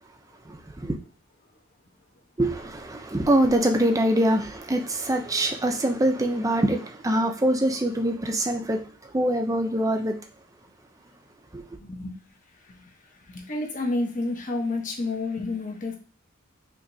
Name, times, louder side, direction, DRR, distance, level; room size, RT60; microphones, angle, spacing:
voice 1, 0.5-1.0 2.4-8.9 9.1-10.2 11.5-11.6, right 1 dB, 15° right, 5 dB, 0.5 m, -24 dB
voice 2, 11.8-12.1 13.3-16.0, left 2 dB, 40° left, 2 dB, 0.9 m, -29 dB
4.9 x 2.8 x 2.7 m, 0.38 s
head